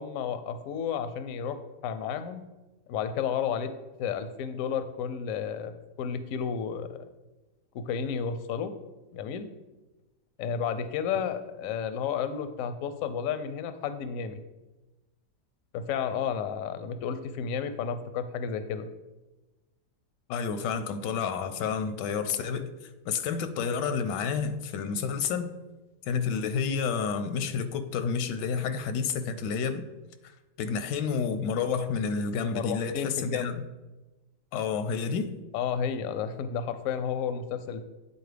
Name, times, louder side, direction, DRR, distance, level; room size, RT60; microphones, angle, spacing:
voice 1, 0.0-1.6 1.8-2.4 2.9-3.7 4.0-5.7 6.0-7.0 7.7-8.7 9.1-9.5 10.4-14.4 15.7-18.9 32.5-33.5 35.5-37.8, left 7 dB, 70° left, 10 dB, 0.8 m, -32 dB
voice 2, 20.3-22.7 23.1-25.5 26.0-29.8 30.2-33.6 34.5-35.3, left 6 dB, 85° left, 10 dB, 1.2 m, -30 dB
9.3 x 4.2 x 3.3 m, 1.1 s
omnidirectional pair, 1.8 m